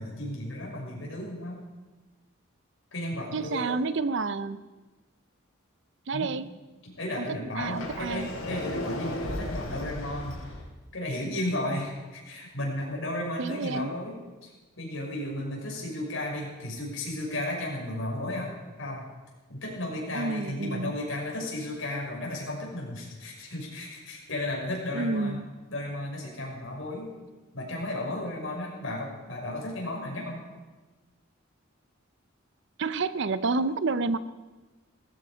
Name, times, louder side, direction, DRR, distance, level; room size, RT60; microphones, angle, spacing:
voice 1, 0.0-1.6 2.9-3.8 6.1-6.3 6.8-10.5 10.9-14.5 14.8-19.1 19.5-25.4 25.7-27.1 27.5-30.4, left 1 dB, 65° left, -2 dB, 5.9 m, -34 dB
voice 2, 3.3-4.7 6.1-6.5 7.2-8.3 13.4-13.9 20.1-20.9 24.9-25.5 32.8-34.2, right 3 dB, 60° right, 14 dB, 0.6 m, -29 dB
Sliding door, 7.6-10.6, left 1 dB, 85° left, 5.3 m, -35 dB
18.5 x 15.5 x 5.1 m, 1.2 s
head